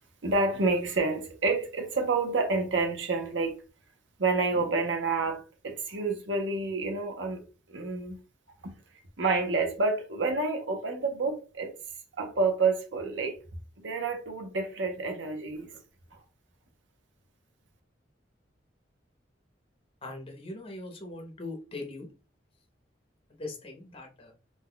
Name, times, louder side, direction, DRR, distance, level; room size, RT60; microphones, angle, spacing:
voice 1, 0.2-3.6 4.2-7.4 7.7-8.2 8.6-8.7 9.2-11.8 12.2-13.4 13.8-15.8, right 3 dB, 75° right, 0.8 m, -29 dB
voice 2, 20.0-22.1 23.3-24.3, left 2 dB, 30° left, 0.8 m, -40 dB
2.6 x 2.3 x 3.7 m
head